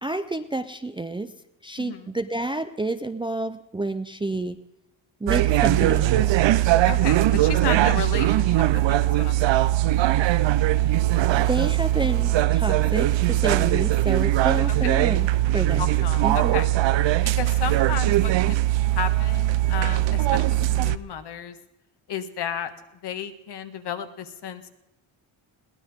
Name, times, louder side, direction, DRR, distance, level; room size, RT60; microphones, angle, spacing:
voice 1, 0.0-1.3 1.6-4.6 5.2-6.4 11.3-16.0 16.2-16.6, right 2 dB, 10° right, 9 dB, 0.5 m, -29 dB
voice 2, 1.8-2.1 6.9-9.6 14.7-14.9 15.8-16.7 17.2-18.6 18.9-21.5 22.1-22.7 23.0-24.7, left 8 dB, 60° left, 8 dB, 1.6 m, -33 dB
sound 1, 5.3-21.0, right 15 dB, 70° right, 0.7 m, -21 dB
21.5 x 17.5 x 3.6 m, 0.95 s
wide cardioid pair, 165°, 46 cm